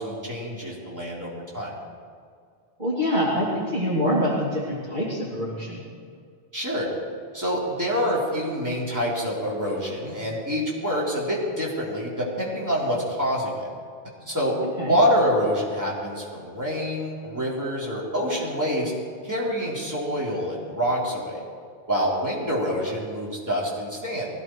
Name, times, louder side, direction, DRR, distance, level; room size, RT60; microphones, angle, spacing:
voice 1, 0.0-1.7 6.5-6.9 7.3-13.7 14.3-14.6 14.8-18.9 19.2-21.4 21.9-24.3, equal, 15° right, -5 dB, 3.6 m, -26 dB
voice 2, 2.8-5.8 14.8-15.0, equal, 45° right, -6 dB, 2.9 m, -25 dB
20.5 x 15.5 x 4.6 m, 2.2 s
omnidirectional pair, 1.1 m